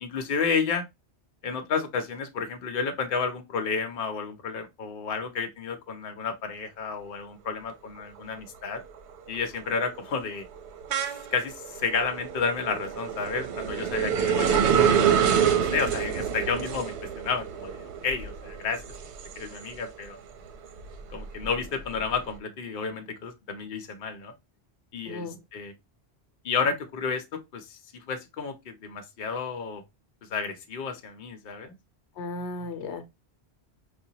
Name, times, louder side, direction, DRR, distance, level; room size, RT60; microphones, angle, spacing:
voice 1, 0.0-0.8 1.4-8.8 9.3-10.5 11.3-14.6 15.5-18.8 19.4-20.2 21.1-24.3 24.9-25.7 26.4-29.8 30.3-31.7, left 5 dB, 60° left, 0.8 m, -31 dB
sound 1, 8.0-8.4 8.8-20.0 20.4-22.2, right 8 dB, 80° right, 0.9 m, -27 dB
voice 2, 25.1-25.4 32.2-33.0, left 2 dB, 85° left, 1.0 m, -35 dB
4.8 x 2.2 x 2.8 m
omnidirectional pair, 1.1 m